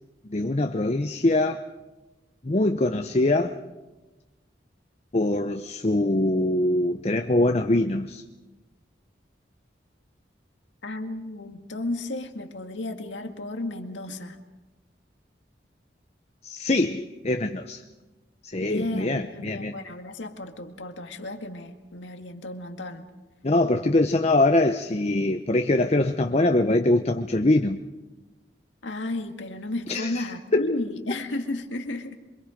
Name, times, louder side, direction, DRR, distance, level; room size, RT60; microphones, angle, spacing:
voice 1, 0.3-1.6 2.4-3.6 5.1-8.2 16.4-17.8 18.4-19.7 23.4-27.8 29.9-30.7, left 2 dB, 35° left, 7 dB, 0.7 m, -23 dB
voice 2, 10.8-14.4 18.6-23.0 28.8-32.1, left 2 dB, 90° left, 5 dB, 2.1 m, -33 dB
27.0 x 25.0 x 5.2 m, 1.2 s
head